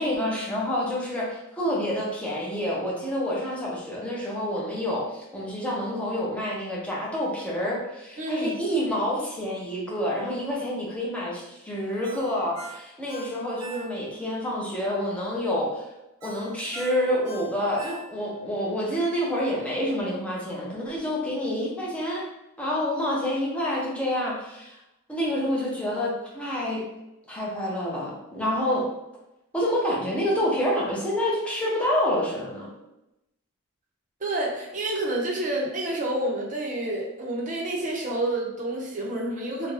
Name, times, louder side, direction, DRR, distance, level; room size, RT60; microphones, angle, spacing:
voice 1, 0.0-15.9 16.2-22.2 22.6-24.8 25.1-26.8 27.3-28.9 29.5-32.7, equal, 5° left, -5 dB, 0.6 m, -28 dB
voice 2, 8.2-8.6 34.2-39.7, right 1 dB, 35° right, -2 dB, 0.6 m, -29 dB
Ringtone, 12.0-14.3 14.7-14.8 16.2-18.4 18.8-18.9, right 2 dB, 70° right, 0.7 m, -42 dB
2.5 x 2.2 x 3.1 m, 0.91 s
head